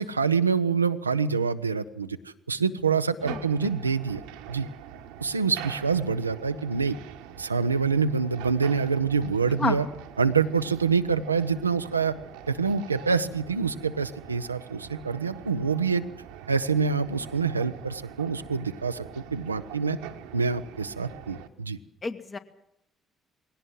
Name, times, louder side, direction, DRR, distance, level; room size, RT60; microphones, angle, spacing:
voice 1, 0.0-4.2 4.5-4.7 5.2-7.0 7.4-9.8 10.2-12.1 12.5-16.0 16.5-20.0 20.3-21.8, right 5 dB, 90° right, 10 dB, 0.7 m, -26 dB
voice 2, 3.2-3.7 9.5-9.9 22.0-22.4, left 3 dB, 35° left, 7 dB, 2.0 m, -31 dB
sound 1, 3.2-21.5, right 10 dB, 70° right, 1.3 m, -44 dB
20.5 x 17.5 x 7.6 m, 0.78 s
figure-of-eight pair, 45°, 0 cm